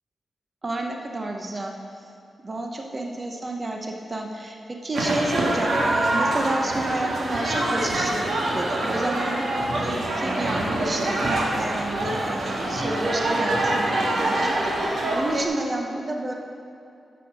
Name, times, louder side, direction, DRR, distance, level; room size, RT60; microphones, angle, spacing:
voice 1, 0.6-1.8 2.4-8.2 8.5-16.3, right 2 dB, 30° right, 2 dB, 0.8 m, -30 dB
sound 1, 4.9-15.4, right 1 dB, 60° right, 1.6 m, -25 dB
11.0 x 7.1 x 6.1 m, 2.6 s
wide cardioid pair, 160°, 0 cm